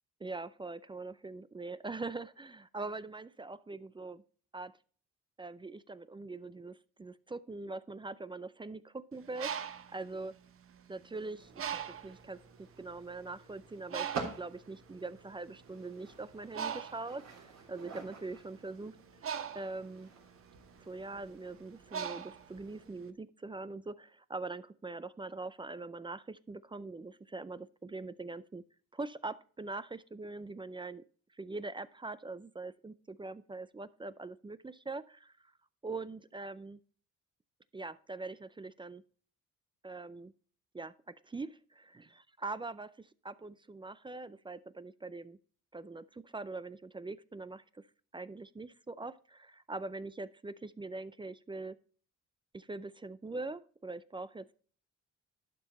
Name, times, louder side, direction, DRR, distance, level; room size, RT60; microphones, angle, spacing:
voice 1, 0.2-4.2 4.5-4.7 5.4-10.3 10.9-19.0 19.5-20.1 20.8-28.6 28.9-31.0 31.3-35.5 35.8-36.8 37.7-39.0 39.8-40.3 40.7-45.4 45.7-47.9 48.1-51.8 52.5-54.5, right 3 dB, 15° right, 16 dB, 0.4 m, -43 dB
Bird, 9.2-11.0 11.6-12.2 12.9-13.1 13.3-23.0, right 8 dB, 45° right, 0.8 m, -41 dB
sound 1, 11.4-22.9, right 4 dB, 60° right, 3.3 m, -49 dB
11.5 x 5.7 x 4.1 m, 0.43 s
cardioid pair, 90°, 30 cm